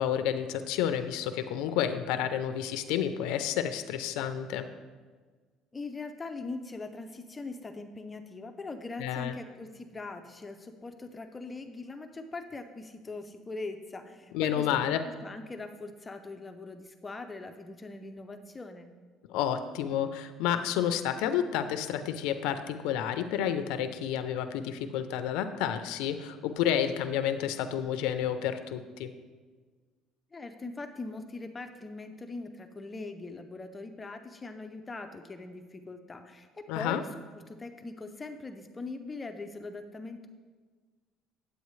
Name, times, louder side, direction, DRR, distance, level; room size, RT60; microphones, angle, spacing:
voice 1, 0.0-4.7 9.0-9.4 14.3-15.0 19.3-29.1 36.7-37.0, left 9 dB, 90° left, 9 dB, 0.5 m, -30 dB
voice 2, 5.7-18.9 30.3-37.1 37.3-40.3, left 3 dB, 15° left, 7 dB, 0.4 m, -41 dB
9.4 x 8.0 x 3.1 m, 1.4 s
cardioid pair, 140°, 0 cm